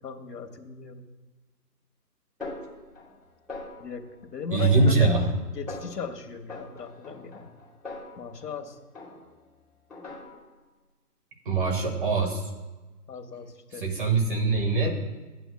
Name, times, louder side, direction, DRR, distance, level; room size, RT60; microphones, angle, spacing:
voice 1, 0.0-1.0 3.8-7.5 8.2-8.8 13.1-13.9, left 5 dB, 85° left, 7 dB, 1.4 m, -37 dB
Snare drum, 2.4-3.2 3.5-4.1 4.6-5.4 5.7-6.1 6.5-8.6 8.9-9.5 9.9-10.6, left 2 dB, ahead, 0.9 m, -42 dB
voice 2, 4.5-5.3 11.4-12.5 13.8-14.9, right 3 dB, 35° right, 2 dB, 1.5 m, -23 dB
12.5 x 9.0 x 2.3 m, 1.2 s
hypercardioid pair, 170°, 47 cm